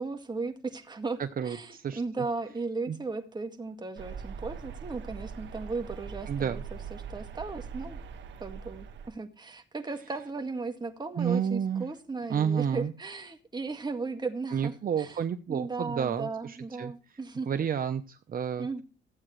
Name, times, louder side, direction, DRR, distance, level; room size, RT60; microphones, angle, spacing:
voice 1, 0.0-8.0 8.4-15.2 15.5-17.5 18.6-18.8, right 3 dB, 20° right, 5 dB, 1.8 m, -36 dB
voice 2, 1.2-2.0 2.9-3.0 6.3-6.6 11.2-11.9 12.3-12.9 14.5-16.9 17.5-18.8, right 7 dB, 45° right, 8 dB, 0.8 m, -30 dB
sound 1, 4.0-9.1, right 6 dB, 65° right, 1.5 m, -41 dB
15.0 x 8.7 x 3.1 m, 0.35 s
cardioid pair, 90°, 20 cm